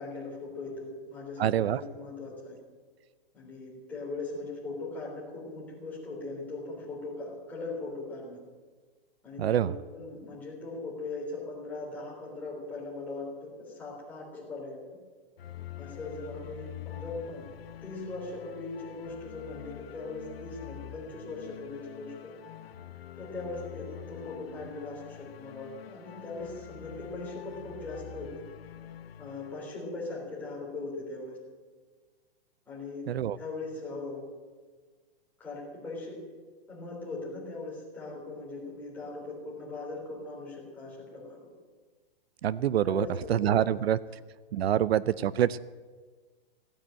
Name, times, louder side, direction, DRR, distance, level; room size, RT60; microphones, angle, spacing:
voice 1, 0.0-2.6 3.3-8.4 9.2-14.8 15.8-17.5 17.8-22.3 23.2-28.4 29.2-31.4 32.7-33.1 33.4-34.2 35.4-36.2 36.7-41.5 42.8-43.6 44.5-44.6, left 3 dB, 5° left, -6 dB, 3.4 m, -40 dB
voice 2, 1.4-1.8 9.4-9.7 33.1-33.4 42.4-44.0 44.5-45.6, right 10 dB, 80° right, 19 dB, 0.6 m, -26 dB
sound 1, 15.4-29.9, left 12 dB, 70° left, 0.9 m, -46 dB
16.0 x 9.0 x 8.8 m, 1.5 s
hypercardioid pair, 180°, 31 cm